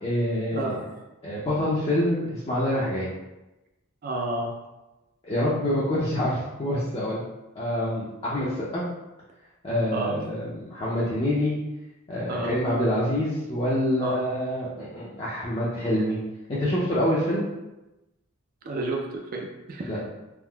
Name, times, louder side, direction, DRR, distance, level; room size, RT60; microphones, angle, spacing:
voice 1, 0.0-0.7 1.2-3.1 5.2-7.2 7.5-8.8 9.6-11.6 12.1-16.2 16.5-17.4 19.8-20.0, left 1 dB, 25° left, -8 dB, 0.4 m, -26 dB
voice 2, 0.5-1.0 4.0-4.6 9.9-10.2 12.3-12.6 14.0-14.1 18.6-20.0, right 2 dB, 40° right, 1 dB, 0.3 m, -31 dB
3.5 x 2.5 x 2.2 m, 1.0 s
head